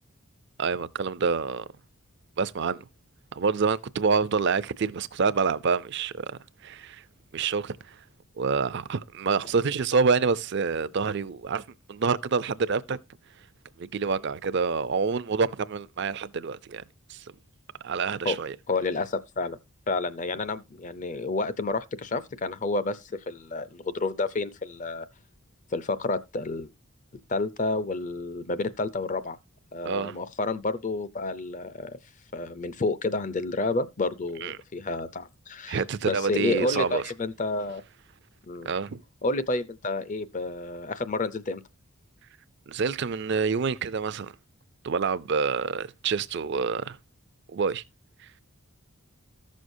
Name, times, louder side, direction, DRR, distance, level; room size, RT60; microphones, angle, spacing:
voice 1, 0.6-1.6 2.4-2.9 3.3-7.0 7.3-8.0 8.4-11.6 11.9-13.0 13.8-16.8 17.1-17.2 17.8-18.6 29.8-30.2 34.4-34.6 35.7-37.0 38.7-39.0 42.7-44.3 44.8-47.0 47.5-47.8, right 5 dB, 50° right, 0.5 m, -27 dB
voice 2, 18.7-19.6 19.9-25.1 25.7-26.7 27.3-29.4 29.7-32.0 32.3-37.8 38.5-38.7 39.2-41.6, left 3 dB, 35° left, 0.5 m, -30 dB
14.5 x 6.3 x 2.6 m
head